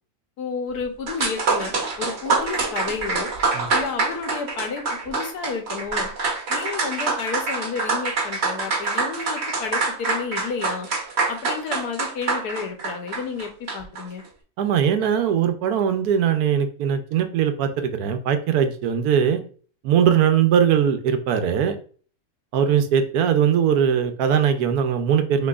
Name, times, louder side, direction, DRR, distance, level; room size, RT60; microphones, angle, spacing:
voice 1, 0.4-3.3 3.7-6.1 6.5-10.9 11.3-14.2, left 5 dB, 85° left, 5 dB, 1.4 m, -31 dB
sound 1, 0.8-0.9 1.1-14.0, right 4 dB, 50° right, 1.1 m, -25 dB
voice 2, 14.6-19.4 19.8-21.8 22.5-25.5, right 8 dB, 80° right, 8 dB, 1.1 m, -20 dB
6.0 x 3.3 x 2.4 m, 0.42 s
omnidirectional pair, 1.6 m